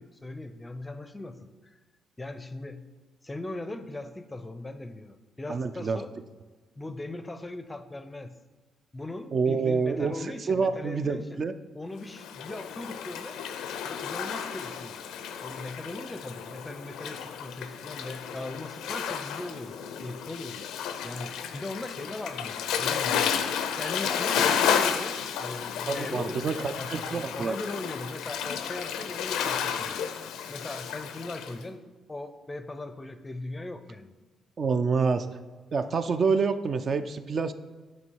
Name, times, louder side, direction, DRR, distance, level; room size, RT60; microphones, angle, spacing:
voice 1, 0.0-1.8 2.2-2.9 3.2-6.1 6.8-8.4 8.9-11.4 11.7-13.4 13.8-15.0 15.4-20.6 21.0-23.3 23.7-30.0 30.5-34.1, left 2 dB, 20° left, 10 dB, 0.5 m, -39 dB
voice 2, 5.5-6.0 9.3-11.5 25.9-27.6 34.6-35.3 35.7-37.5, right 5 dB, 45° right, 10 dB, 0.4 m, -27 dB
Waves surf, 12.1-31.5, left 8 dB, 90° left, 0.4 m, -32 dB
8.7 x 3.1 x 4.6 m, 1.3 s
cardioid pair, 90°, 0 cm